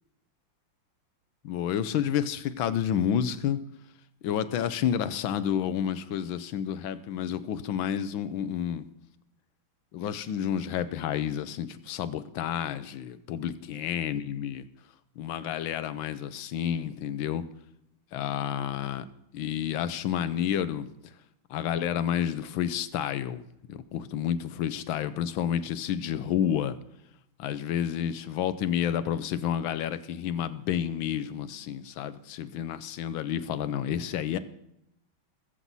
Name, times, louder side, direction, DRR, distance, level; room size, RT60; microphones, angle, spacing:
voice 1, 1.4-3.6 4.2-8.9 9.9-14.6 15.2-17.4 18.1-19.0 19.3-20.9 21.5-26.7 27.4-34.4, left 9 dB, 80° left, 13 dB, 1.5 m, -30 dB
21.0 x 7.7 x 4.1 m, 0.83 s
omnidirectional pair, 2.2 m